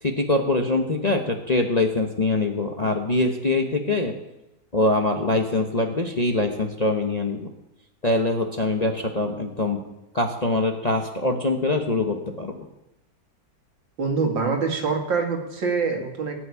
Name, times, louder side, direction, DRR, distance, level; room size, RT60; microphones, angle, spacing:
voice 1, 0.0-4.1 4.7-7.5 8.0-9.8 10.1-12.6, left 2 dB, 30° left, 3 dB, 0.9 m, -23 dB
voice 2, 14.0-16.4, right 4 dB, 85° right, 3 dB, 2.8 m, -25 dB
18.5 x 6.3 x 9.5 m, 0.94 s
omnidirectional pair, 2.0 m